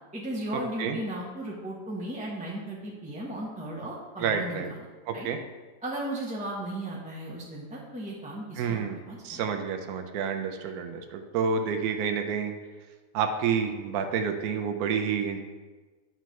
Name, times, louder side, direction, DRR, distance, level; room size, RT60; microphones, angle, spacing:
voice 1, 0.1-4.8 5.1-5.3 5.8-9.4, right 1 dB, 5° right, -4 dB, 0.8 m, -36 dB
voice 2, 4.2-4.7 5.1-5.4 8.6-9.0 9.2-12.5 13.1-15.4, right 6 dB, 70° right, 6 dB, 1.1 m, -29 dB
9.1 x 5.6 x 3.1 m, 1.3 s
omnidirectional pair, 1.7 m